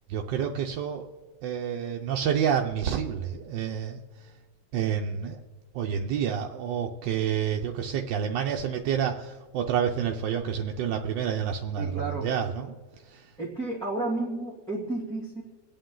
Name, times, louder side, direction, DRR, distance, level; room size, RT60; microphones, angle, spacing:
voice 1, 0.1-1.0 1.4-4.0 4.7-5.4 5.7-12.7 13.1-13.3, right 8 dB, 85° right, 3 dB, 1.4 m, -29 dB
voice 2, 11.8-12.3 13.4-15.4, right 2 dB, ahead, -7 dB, 2.2 m, -32 dB
24.5 x 8.8 x 3.8 m, 1.3 s
omnidirectional pair, 1.9 m